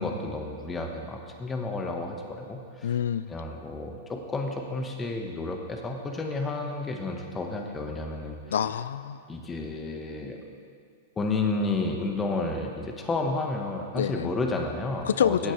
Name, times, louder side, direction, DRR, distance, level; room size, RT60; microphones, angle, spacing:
voice 1, 0.0-2.9 3.3-8.4 9.3-10.4 11.2-15.5, left 3 dB, 20° left, 3 dB, 1.4 m, -31 dB
voice 2, 2.8-3.3 8.5-9.2 13.9-14.3 15.1-15.5, left 8 dB, 75° left, 15 dB, 0.3 m, -26 dB
15.5 x 8.8 x 3.3 m, 2.2 s
hypercardioid pair, 105°, 0 cm